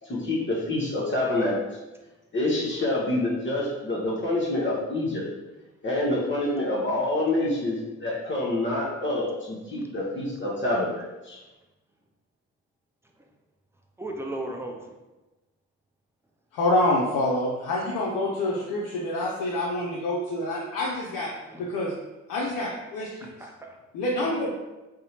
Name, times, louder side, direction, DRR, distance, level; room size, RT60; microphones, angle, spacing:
voice 1, 0.0-1.5 2.3-5.2 5.8-11.4, left 1 dB, 30° left, -6 dB, 0.7 m, -27 dB
voice 2, 14.0-14.9 21.4-21.8 23.2-23.8 24.2-24.5, right 1 dB, 5° right, 1 dB, 0.4 m, -37 dB
voice 3, 16.5-21.3 21.6-21.9 22.3-23.3 23.9-24.5, left 1 dB, 60° left, -3 dB, 0.5 m, -27 dB
2.7 x 2.1 x 2.8 m, 1.1 s
hypercardioid pair, 40°, 37 cm